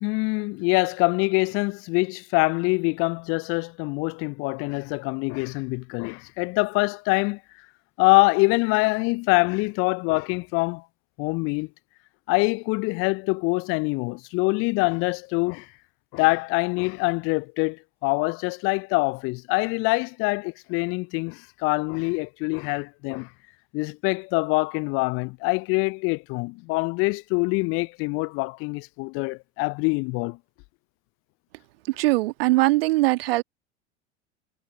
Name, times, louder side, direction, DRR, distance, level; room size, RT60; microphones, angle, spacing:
voice 1, 0.0-7.4 8.0-10.8 11.2-11.7 12.3-15.7 16.1-23.3 23.7-30.4, left 28 dB, 40° left, 0.7 m, -24 dB
voice 2, 31.9-33.4, right 20 dB, 55° right, 1.8 m, -21 dB
figure-of-eight pair, 80°, 34 cm